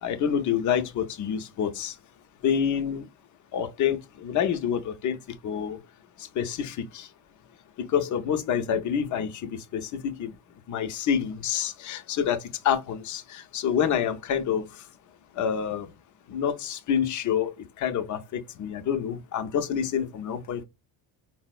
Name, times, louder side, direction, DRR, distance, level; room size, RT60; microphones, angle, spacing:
voice 1, 0.0-1.9 2.4-3.1 3.5-5.2 5.4-5.8 6.4-7.1 7.8-10.3 10.7-14.7 15.4-15.9 16.3-20.6, left 8 dB, 45° left, 0.5 m, -27 dB
3.9 x 2.0 x 2.3 m
cardioid pair, 100°, 43 cm